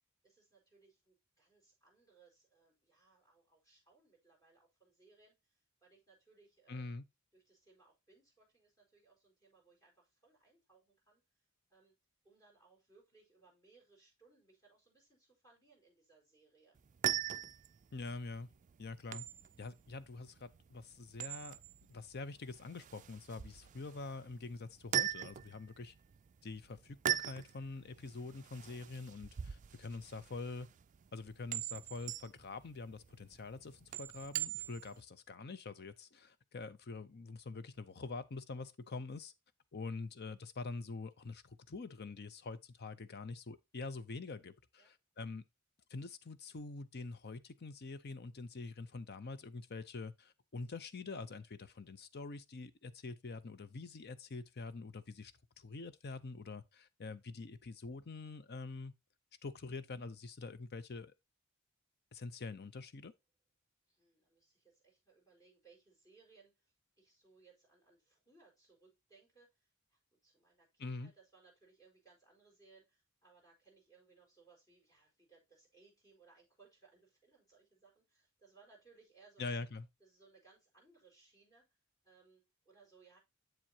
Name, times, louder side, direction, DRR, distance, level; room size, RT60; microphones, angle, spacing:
voice 1, 0.2-7.0 7.3-11.2 11.7-11.9 12.2-16.8 34.5-34.8 44.8-44.9 45.2-45.4 63.9-79.7 80.0-81.7 82.0-83.2, right 4 dB, 20° left, 4.8 m, -67 dB
voice 2, 6.7-7.0 17.9-18.5 18.8-19.3 19.6-21.6 21.9-25.9 26.4-30.7 31.1-39.3 39.7-45.4 45.9-55.3 55.6-58.9 59.4-61.1 62.1-63.1 70.8-71.1 79.4-79.9, left 3 dB, 50° left, 0.7 m, -45 dB
sound 1, 16.8-35.0, right 11 dB, 35° right, 0.3 m, -42 dB
7.7 x 7.5 x 2.8 m
head